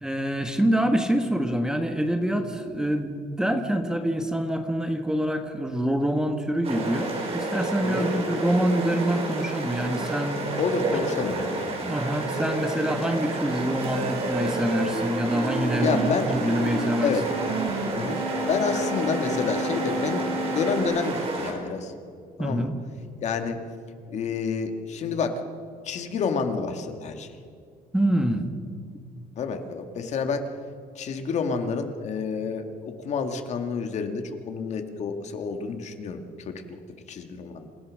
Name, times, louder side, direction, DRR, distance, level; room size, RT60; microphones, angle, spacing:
voice 1, 0.0-10.4 10.9-11.0 11.8-17.1 22.4-22.8 27.9-28.4, right 1 dB, 5° right, 6 dB, 1.3 m, -26 dB
sound 1, 6.6-21.5, right 2 dB, 40° right, 4.9 m, -30 dB
voice 2, 10.6-11.5 15.7-16.3 17.0-17.2 17.9-21.9 22.4-22.7 23.2-23.6 24.1-25.4 25.8-27.4 29.4-30.4 31.0-36.6 37.1-37.7, left 5 dB, 50° left, 6 dB, 2.0 m, -29 dB
sound 2, 13.8-16.9 17.3-20.8, right 1 dB, 90° right, 3.9 m, -31 dB
28.0 x 17.0 x 6.4 m, 2.3 s
cardioid pair, 170°, 15 cm